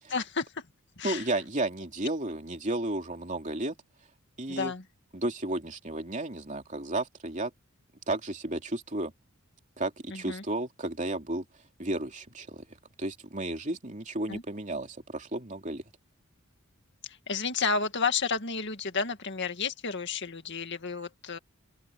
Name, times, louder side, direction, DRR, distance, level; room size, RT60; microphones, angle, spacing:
voice 1, 0.1-0.6 1.0-1.2 4.5-4.8 10.1-10.4 14.3-14.4 17.0-21.4, left 5 dB, 55° left, 2.0 m, -31 dB
voice 2, 1.0-3.7 4.4-4.7 5.1-7.5 8.1-9.1 9.8-11.4 11.8-12.6 13.0-15.8, right 2 dB, 35° right, 3.1 m, -33 dB
open air
head